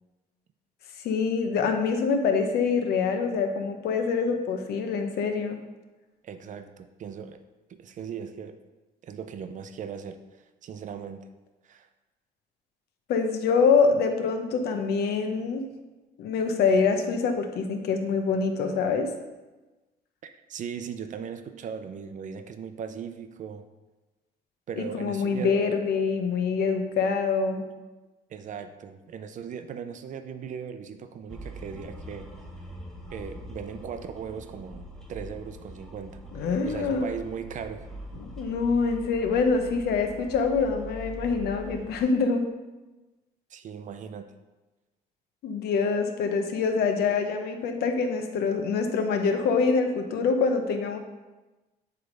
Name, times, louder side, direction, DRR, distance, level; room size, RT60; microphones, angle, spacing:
voice 1, 1.0-5.6 13.1-15.7 16.2-19.1 24.8-27.7 36.3-37.1 38.2-42.5 45.4-51.0, left 5 dB, 70° left, 6 dB, 0.9 m, -25 dB
voice 2, 6.2-7.4 7.7-8.6 9.0-10.2 10.6-11.3 11.6-11.9 20.2-23.7 24.7-25.6 28.3-32.3 33.1-37.9 43.5-44.3, right 7 dB, 50° right, 9 dB, 0.6 m, -38 dB
sound 1, 31.3-42.0, equal, 5° left, 0.9 m, -43 dB
7.8 x 3.4 x 5.3 m, 1.1 s
cardioid pair, 110°, 17 cm